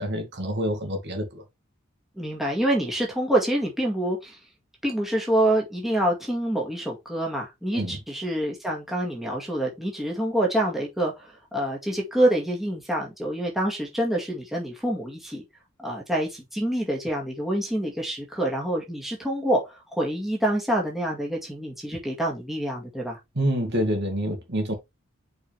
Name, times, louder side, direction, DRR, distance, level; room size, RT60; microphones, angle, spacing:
voice 1, 0.0-1.4 7.7-8.0 23.4-24.7, equal, 55° right, 2.2 m, -27 dB
voice 2, 2.2-4.4 4.8-15.4 15.8-23.2, right 1 dB, ahead, 2.0 m, -26 dB
6.3 x 4.9 x 3.5 m
head